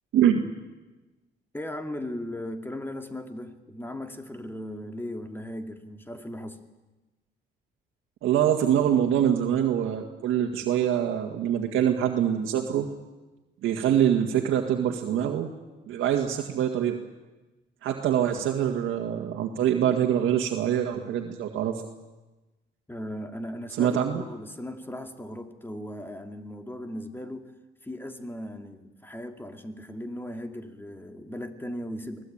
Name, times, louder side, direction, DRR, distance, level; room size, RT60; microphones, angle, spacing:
voice 1, 0.1-0.5 8.2-12.9 13.6-15.5 15.9-17.0 17.8-21.8 23.8-24.2, right 10 dB, 85° right, 2 dB, 1.9 m, -24 dB
voice 2, 1.5-6.6 22.9-27.5 27.8-32.2, left 1 dB, 10° left, 5 dB, 2.5 m, -37 dB
24.0 x 18.0 x 8.8 m, 1.1 s
cardioid pair, 90°, 20 cm